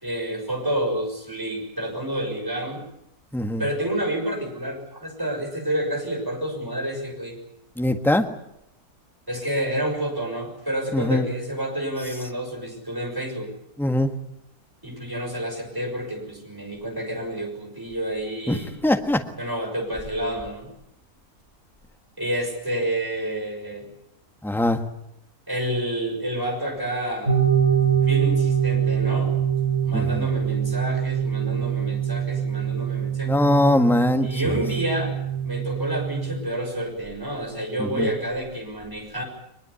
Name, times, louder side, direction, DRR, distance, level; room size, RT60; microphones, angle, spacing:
voice 1, 0.0-2.8 3.6-7.4 9.3-13.5 14.8-18.8 19.4-20.7 22.2-23.9 25.5-27.4 28.1-29.3 29.8-33.4 34.2-35.1 35.4-39.2, right 1 dB, 15° right, 2 dB, 6.6 m, -29 dB
voice 2, 7.8-8.3 10.9-11.3 13.8-14.1 18.5-19.2 24.4-24.8 29.9-30.2 33.3-34.6 37.8-38.1, left 1 dB, ahead, 5 dB, 1.5 m, -22 dB
sound 1, 27.3-36.4, right 8 dB, 45° right, 5.7 m, -24 dB
22.5 x 22.0 x 8.5 m, 0.79 s
omnidirectional pair, 1.6 m